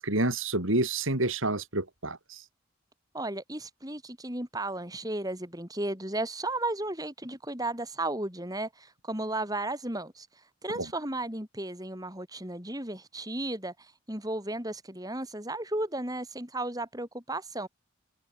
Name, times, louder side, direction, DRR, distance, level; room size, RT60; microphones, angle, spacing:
voice 1, 0.0-2.2, right 2 dB, 75° right, 5.2 m, -28 dB
voice 2, 3.1-10.3 10.6-17.7, right 2 dB, 20° right, 6.2 m, -34 dB
head